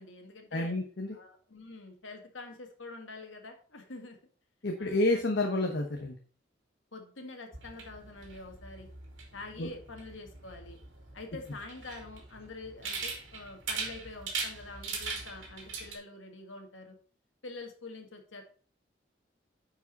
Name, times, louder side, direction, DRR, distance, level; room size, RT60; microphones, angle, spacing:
voice 1, 0.0-0.8 1.1-4.2 4.8-5.2 6.9-8.9 9.3-10.8 11.1-17.0 17.4-18.4, left 3 dB, 85° left, 4 dB, 1.9 m, -46 dB
voice 2, 0.5-1.2 4.6-6.2 9.6-9.7, left 2 dB, 65° left, 2 dB, 1.0 m, -29 dB
sound 1, 7.5-15.9, right 4 dB, 85° right, 2.4 m, -41 dB
9.9 x 5.0 x 4.1 m, 0.43 s
head